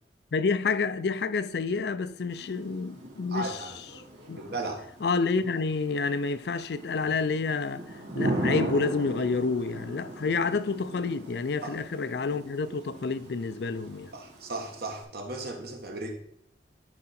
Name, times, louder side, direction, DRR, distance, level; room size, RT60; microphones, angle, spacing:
voice 1, 0.3-3.6 4.3-4.4 5.0-14.1, left 4 dB, 65° left, 0.4 m, -29 dB
Thunder / Rain, 2.3-15.0, right 1 dB, 90° right, 3.3 m, -38 dB
voice 2, 3.3-3.7 4.4-4.8 11.6-11.8 14.1-16.1, right 2 dB, 55° right, 1.5 m, -35 dB
11.5 x 4.9 x 4.3 m
head